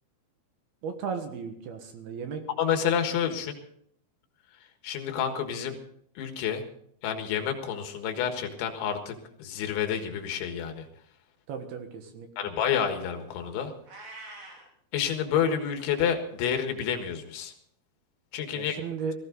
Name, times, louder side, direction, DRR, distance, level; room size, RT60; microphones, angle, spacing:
voice 1, 0.8-2.4 11.5-12.3 18.6-19.1, right 6 dB, 65° right, 5 dB, 3.0 m, -35 dB
voice 2, 2.6-3.6 4.8-5.8 6.2-6.6 7.0-10.9 12.4-13.7 14.9-17.5 18.3-18.8, left 8 dB, 80° left, 5 dB, 3.9 m, -29 dB
Meow, 13.8-14.7, right 2 dB, 50° right, 5.0 m, -44 dB
18.5 x 15.5 x 3.9 m, 0.68 s
omnidirectional pair, 5.2 m